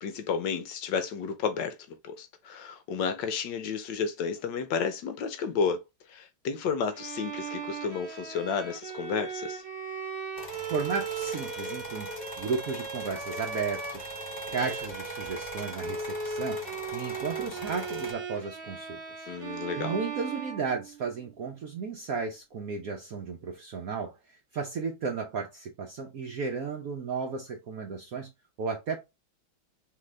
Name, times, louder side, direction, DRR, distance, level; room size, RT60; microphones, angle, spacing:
voice 1, 0.0-1.8 2.0-5.8 6.1-9.6 19.3-20.0, left 6 dB, 75° left, 1.1 m, -31 dB
Bowed string instrument, 6.9-21.2, right 5 dB, 50° right, 2.3 m, -38 dB
sound 1, 10.4-18.1, left 2 dB, 35° left, 0.7 m, -42 dB
voice 2, 10.7-12.1 12.4-14.1 14.5-19.0 19.4-28.3 28.6-29.0, right 5 dB, 70° right, 0.8 m, -34 dB
3.8 x 3.3 x 3.2 m
omnidirectional pair, 2.2 m